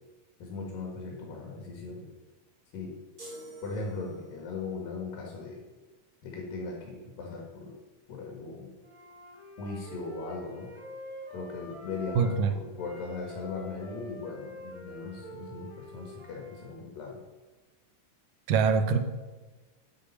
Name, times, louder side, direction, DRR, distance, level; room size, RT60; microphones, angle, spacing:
voice 1, 0.4-2.1 2.7-3.0 3.6-5.6 6.2-7.8 8.1-8.7 9.6-10.7 11.3-17.2, left 4 dB, 85° left, 0 dB, 3.6 m, -38 dB
sound 1, 3.2-4.5, right 2 dB, 25° right, 4.9 m, -46 dB
Wind instrument woodwind instrument, 8.8-12.5 12.8-16.7, right 1 dB, 10° right, 3.2 m, -46 dB
voice 2, 12.2-12.5 18.5-19.0, right 5 dB, 75° right, 7 dB, 2.5 m, -24 dB
10.5 x 8.9 x 5.5 m, 1.2 s
omnidirectional pair, 3.9 m